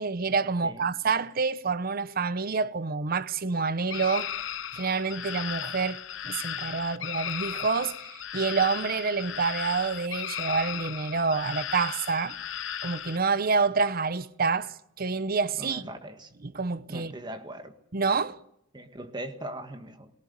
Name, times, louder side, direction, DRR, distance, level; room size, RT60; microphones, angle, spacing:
voice 1, 0.0-4.3 4.7-6.0 6.2-12.4 12.8-15.8 16.4-17.1 17.9-18.4, right 4 dB, 50° right, 0.8 m, -28 dB
sound 1, 3.9-13.2, left 9 dB, 80° left, 0.9 m, -36 dB
voice 2, 15.6-16.3 16.9-17.7 18.7-20.1, right 1 dB, 25° right, 1.7 m, -40 dB
20.5 x 18.5 x 9.5 m
head